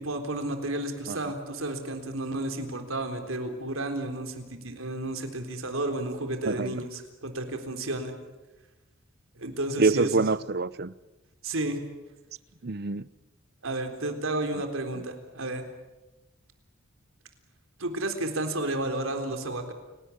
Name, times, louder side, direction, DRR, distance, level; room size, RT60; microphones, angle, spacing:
voice 1, 0.0-8.2 9.4-10.2 11.4-11.8 13.6-15.6 17.8-19.7, right 2 dB, 90° right, 3.9 m, -32 dB
voice 2, 6.4-6.7 9.8-10.9 12.6-13.0 14.9-15.0, right 3 dB, 50° right, 0.7 m, -26 dB
30.0 x 18.0 x 8.6 m
head